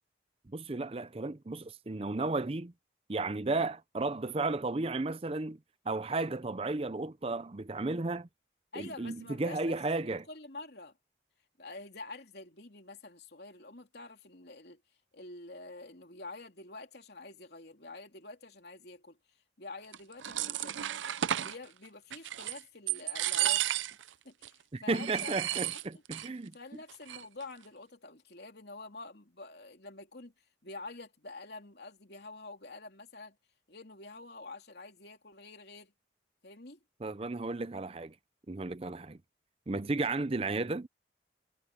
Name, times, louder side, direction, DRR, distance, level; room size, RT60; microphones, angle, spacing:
voice 1, 0.5-2.7 3.1-5.6 5.9-8.3 8.8-10.3 24.7-26.5 37.0-38.1 38.5-39.2 39.7-40.9, right 3 dB, 30° right, 0.5 m, -34 dB
voice 2, 8.7-9.8 10.0-10.9 11.6-14.8 15.1-19.2 19.6-20.9 21.4-23.7 24.2-25.6 26.2-30.3 30.6-33.4 33.7-35.9 36.4-36.8, left 3 dB, 60° left, 3.2 m, -47 dB
sound 1, 19.9-21.6 22.1-22.6 22.9-24.1 24.4-24.5 24.9-26.3 26.5-26.6 26.9-27.4, right 12 dB, 90° right, 0.5 m, -33 dB
head